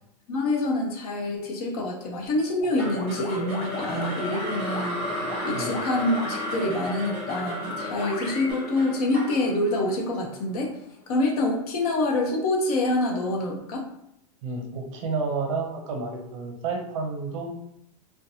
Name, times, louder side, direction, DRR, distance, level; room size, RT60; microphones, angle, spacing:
voice 1, 0.3-5.2 5.4-10.7 11.1-13.8, left 2 dB, 65° left, 0 dB, 0.7 m, -26 dB
sound 1, 2.6-8.5, left 2 dB, 30° left, 0.4 m, -36 dB
sound 2, 2.8-11.0, left 1 dB, 25° right, 1.0 m, -34 dB
voice 2, 14.4-17.5, right 4 dB, 50° right, 3 dB, 0.5 m, -30 dB
2.6 x 2.1 x 2.7 m, 0.78 s
supercardioid pair, 160°, 21 cm